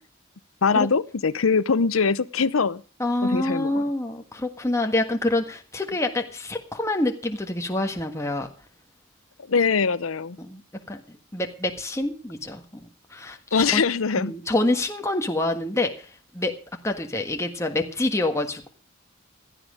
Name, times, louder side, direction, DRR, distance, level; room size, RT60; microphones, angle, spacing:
voice 1, 0.6-2.8 3.2-3.8 9.5-10.4 13.5-14.3, left 5 dB, 85° left, 0.7 m, -22 dB
voice 2, 3.0-8.5 10.4-10.6 10.9-12.6 13.1-13.8 14.2-15.9 16.3-16.5 16.8-18.7, left 2 dB, 15° left, 1.5 m, -26 dB
16.0 x 12.0 x 5.0 m
head